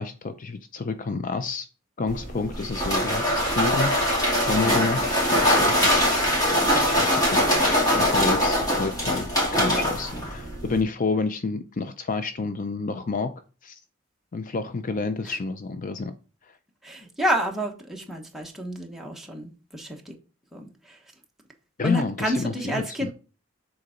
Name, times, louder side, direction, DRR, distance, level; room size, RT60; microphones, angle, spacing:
voice 1, 0.0-1.7 2.0-6.2 7.0-13.3 13.6-13.8 14.3-16.1 21.8-23.1, left 4 dB, 40° left, 9 dB, 0.5 m, -29 dB
sound 1, 2.1-10.8, equal, 20° left, 2.4 m, -22 dB
voice 2, 16.8-20.1 20.5-21.0 21.8-23.1, equal, ahead, 0 dB, 1.2 m, -30 dB
6.7 x 4.0 x 5.1 m, 0.35 s
head